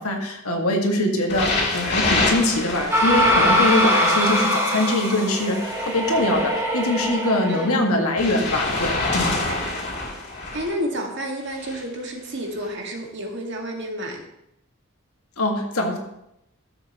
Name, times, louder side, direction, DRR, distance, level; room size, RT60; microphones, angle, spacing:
voice 1, 0.0-9.3 15.4-16.0, left 1 dB, 85° left, 2 dB, 1.8 m, -23 dB
sound 1, 1.3-4.4 5.3-7.1 8.2-10.7 11.5-11.8 12.6-12.7, left 2 dB, 50° left, 2.7 m, -27 dB
sound 2, 2.9-7.9, equal, 10° right, 1.8 m, -22 dB
voice 2, 7.5-7.9 9.5-9.6 10.5-14.2, equal, 55° right, 1 dB, 1.8 m, -30 dB
13.5 x 7.7 x 3.0 m, 0.82 s
head